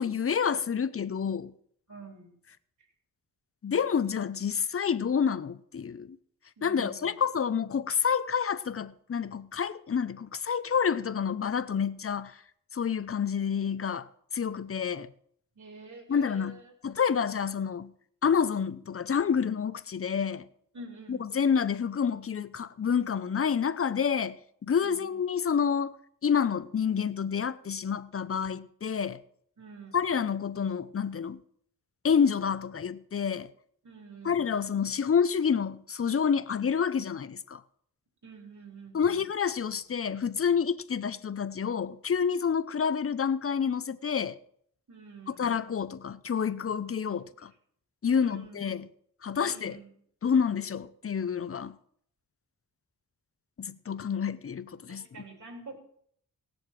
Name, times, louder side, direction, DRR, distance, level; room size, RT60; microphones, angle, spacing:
voice 1, 0.0-1.5 3.6-6.2 6.6-12.3 12.7-14.1 14.3-15.1 16.1-17.9 18.2-20.5 21.1-25.9 26.2-29.2 29.9-31.4 32.0-33.5 34.2-37.6 38.9-44.4 45.3-47.5 48.0-48.9 49.2-49.8 50.2-51.8 53.6-55.1, left 7 dB, 35° left, 0.7 m, -28 dB
voice 2, 1.9-2.4 6.6-7.1 15.6-16.7 20.7-21.3 24.8-25.2 29.6-30.0 33.8-34.5 38.2-39.2 44.9-45.5 48.0-48.7 49.3-49.9 54.9-55.8, right 3 dB, 50° right, 3.8 m, -48 dB
17.5 x 7.8 x 7.5 m
wide cardioid pair, 110°, 37 cm